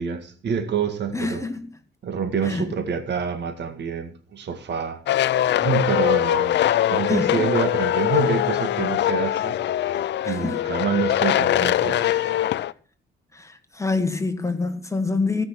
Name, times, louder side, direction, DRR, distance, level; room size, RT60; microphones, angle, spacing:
voice 1, 0.0-1.4 2.0-5.0 5.3-6.6 6.9-9.6 10.3-12.3, right 6 dB, 60° right, 2.0 m, -27 dB
voice 2, 1.1-1.7 2.4-2.7 7.1-7.3 10.2-10.6 13.3-15.4, left 3 dB, 15° left, 1.6 m, -26 dB
sound 1, 5.1-12.7, left 12 dB, 60° left, 0.5 m, -22 dB
18.0 x 6.0 x 6.0 m
cardioid pair, 90°, 20 cm